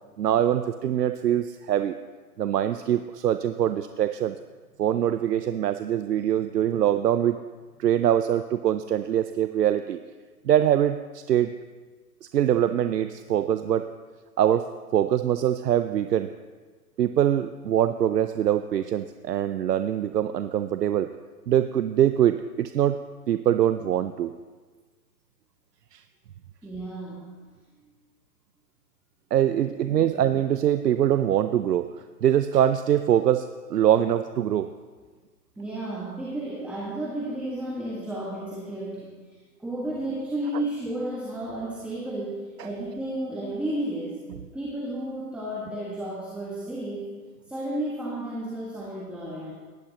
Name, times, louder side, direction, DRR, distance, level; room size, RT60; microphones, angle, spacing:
voice 1, 0.2-2.0 2.4-4.3 4.8-7.4 7.8-10.0 10.4-11.5 12.2-13.9 14.4-16.3 17.0-21.1 21.5-23.0 23.3-24.3 25.9-26.0 29.3-31.9 32.2-34.7, right 10 dB, 80° right, 10 dB, 0.6 m, -23 dB
voice 2, 26.6-27.3 29.7-29.8 35.6-39.1 39.6-44.2 44.5-47.1 47.5-49.5, right 1 dB, ahead, -6 dB, 1.5 m, -32 dB
18.0 x 11.0 x 2.9 m, 1.4 s
figure-of-eight pair, 120°, 47 cm